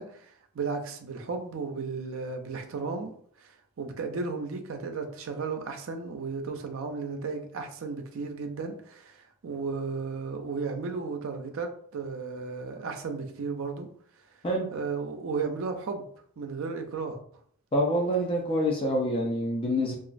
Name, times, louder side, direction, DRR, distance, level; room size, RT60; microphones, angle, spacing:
voice 1, 0.0-3.1 3.4-13.9 14.7-16.0 16.4-17.2, right 4 dB, 70° right, 0.4 m, -34 dB
voice 2, 17.7-19.9, equal, 25° left, 0.4 m, -26 dB
3.0 x 2.4 x 2.5 m
head